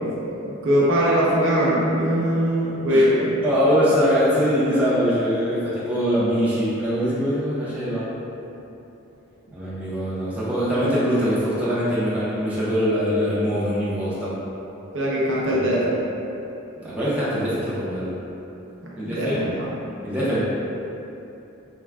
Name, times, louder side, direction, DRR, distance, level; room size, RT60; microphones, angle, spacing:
voice 1, 0.0-3.6 9.5-9.6 14.9-15.9 18.8-19.7, equal, 65° right, -6 dB, 0.6 m, -21 dB
voice 2, 3.4-8.1 9.5-14.3 15.5-15.7 16.8-18.1 19.0-19.5 20.0-20.4, equal, 5° right, -11 dB, 0.6 m, -23 dB
3.4 x 2.2 x 3.4 m, 2.9 s
head